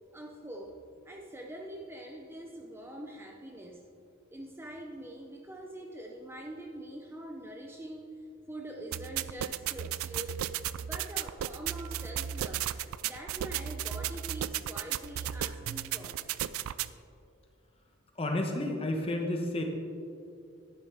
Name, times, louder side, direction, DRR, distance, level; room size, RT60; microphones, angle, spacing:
voice 1, 0.1-0.8 1.1-3.8 4.3-8.1 8.5-10.4 10.8-12.7 13.0-16.2, right 1 dB, 10° right, 0 dB, 0.5 m, -44 dB
sound 1, 8.9-16.9, right 11 dB, 80° right, 0.3 m, -35 dB
voice 2, 18.2-19.6, left 1 dB, 25° left, 3 dB, 1.0 m, -31 dB
11.5 x 9.6 x 3.5 m, 2.5 s
head